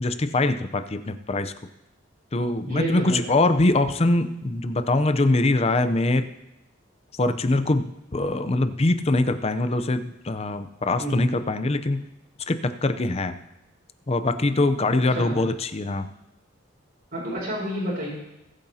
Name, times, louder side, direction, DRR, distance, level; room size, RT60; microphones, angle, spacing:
voice 1, 0.0-1.5 2.3-6.3 7.2-12.1 12.5-13.4 14.1-16.1, left 2 dB, 30° left, 10 dB, 0.6 m, -23 dB
voice 2, 2.6-3.2 11.0-11.3 15.1-15.4 17.1-18.1, right 1 dB, 55° right, -9 dB, 4.3 m, -29 dB
21.0 x 8.8 x 2.8 m, 0.90 s
head